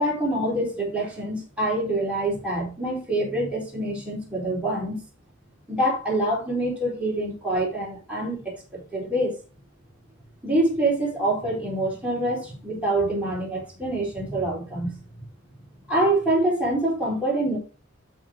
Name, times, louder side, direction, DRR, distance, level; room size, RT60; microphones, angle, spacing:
voice 1, 0.0-5.0 5.7-9.4 10.4-15.0 15.9-17.6, right 1 dB, 5° right, 4.1 m, -25 dB
12.5 x 4.9 x 3.6 m
head